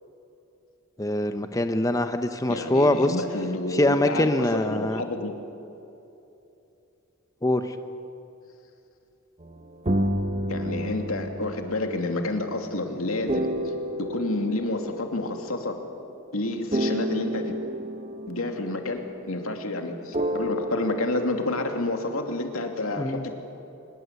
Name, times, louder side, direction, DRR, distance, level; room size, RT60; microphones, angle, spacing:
voice 1, 1.0-3.2 3.7-5.0 7.4-7.8 23.0-23.2, left 1 dB, 15° left, 8 dB, 0.8 m, -23 dB
voice 2, 2.5-5.3 10.5-13.5 14.0-15.8 16.3-17.6 18.3-23.3, left 2 dB, 85° left, 4 dB, 2.7 m, -29 dB
sound 1, 9.4-16.0 16.7-19.5 20.1-21.7, equal, 30° right, 1.3 m, -31 dB
26.0 x 21.5 x 8.2 m, 2.8 s
head